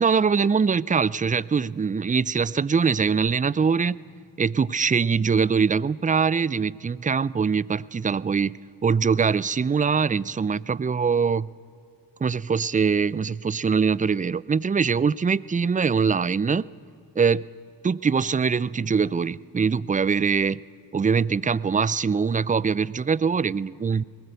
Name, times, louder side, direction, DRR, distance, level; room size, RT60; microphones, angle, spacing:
voice 1, 0.0-4.0 4.4-8.6 8.8-11.5 12.2-16.6 17.2-17.4 17.8-20.6 20.9-24.0, right 5 dB, 20° right, 21 dB, 0.4 m, -23 dB
20.5 x 17.0 x 8.0 m, 2.5 s
supercardioid pair, 45°, 43 cm